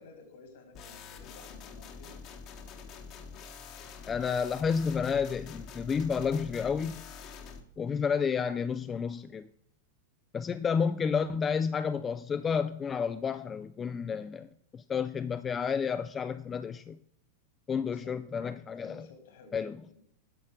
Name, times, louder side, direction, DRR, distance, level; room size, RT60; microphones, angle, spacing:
voice 1, 0.0-2.1 17.8-18.1 18.8-20.0, left 3 dB, 65° left, 5 dB, 2.4 m, -54 dB
sound 1, 0.7-7.6, left 5 dB, 45° left, 1.1 m, -46 dB
voice 2, 4.1-7.0 7.8-9.5 10.3-17.0 17.7-19.1 19.5-19.8, left 6 dB, 25° left, 11 dB, 0.3 m, -31 dB
10.5 x 6.4 x 3.6 m, 0.66 s
figure-of-eight pair, 95°, 0 cm